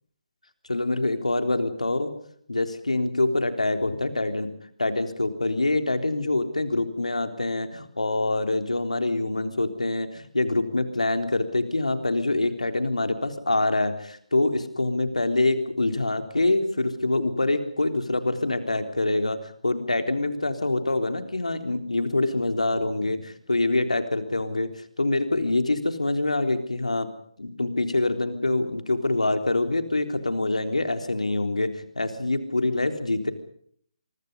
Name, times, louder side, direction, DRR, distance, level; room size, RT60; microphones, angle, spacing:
voice 1, 0.7-2.1 2.5-4.5 4.8-24.7 25.0-27.1 27.4-33.3, left 2 dB, 80° left, 7 dB, 3.7 m, -25 dB
25.5 x 24.5 x 5.5 m, 0.62 s
figure-of-eight pair, 145°, 4 cm